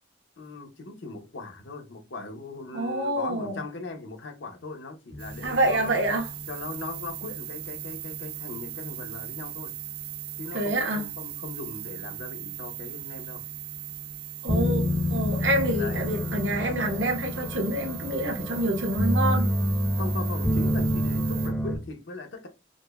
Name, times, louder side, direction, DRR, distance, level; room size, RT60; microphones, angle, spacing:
voice 1, 0.4-6.0 6.5-9.8 10.4-13.4 15.8-16.0 20.0-22.5, left 3 dB, 80° left, 0.7 m, -39 dB
voice 2, 2.7-3.6 5.4-6.3 10.5-11.0 14.4-14.8 15.1-19.5, right 1 dB, 75° right, 0.9 m, -27 dB
sound 1, 5.1-21.8, equal, 5° left, 0.5 m, -30 dB
sound 2, 5.2-21.5, right 17 dB, 55° right, 0.5 m, -39 dB
5.1 x 2.0 x 2.2 m
head